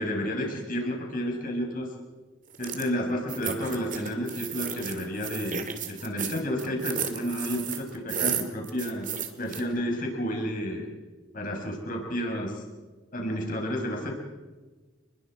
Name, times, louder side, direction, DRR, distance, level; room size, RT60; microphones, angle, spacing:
voice 1, 0.0-1.9 2.6-9.1 9.4-10.9 11.3-12.6 13.1-14.1, equal, 45° left, 1 dB, 6.1 m, -31 dB
sound 1, 2.5-2.9 3.3-9.6, right 7 dB, 40° right, 2.3 m, -33 dB
30.0 x 21.0 x 5.0 m, 1.3 s
head